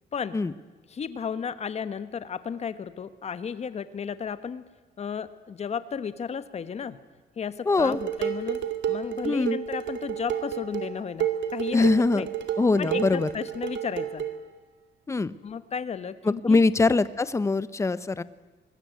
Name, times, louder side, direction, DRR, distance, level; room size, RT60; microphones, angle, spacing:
voice 1, 0.9-4.6 5.0-7.0 7.4-8.6 8.9-12.3 12.8-14.3 15.4-16.6, left 6 dB, 35° left, 13 dB, 1.3 m, -34 dB
voice 2, 7.7-8.0 9.2-9.6 11.7-12.2 12.6-13.3 15.1-15.3 16.3-18.2, left 3 dB, 15° left, 16 dB, 0.7 m, -23 dB
Dishes pots and pans, 7.8-14.4, right 9 dB, 80° right, 2.5 m, -31 dB
25.0 x 20.5 x 9.4 m, 1.2 s
cardioid pair, 165°, 19 cm